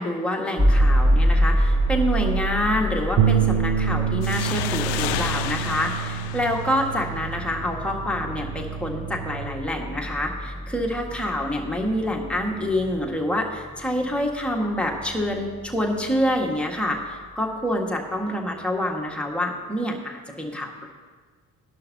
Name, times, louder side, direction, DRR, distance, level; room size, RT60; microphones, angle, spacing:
voice 1, 0.0-20.9, left 1 dB, ahead, -1 dB, 1.7 m, -27 dB
sound 1, 0.6-16.5, equal, 20° right, 1.9 m, -26 dB
Bass guitar, 3.2-9.4, right 9 dB, 45° right, 0.7 m, -27 dB
sound 2, 4.2-7.6, left 12 dB, 60° left, 0.6 m, -32 dB
13.0 x 11.5 x 2.8 m, 1.5 s
figure-of-eight pair, 45°, 45 cm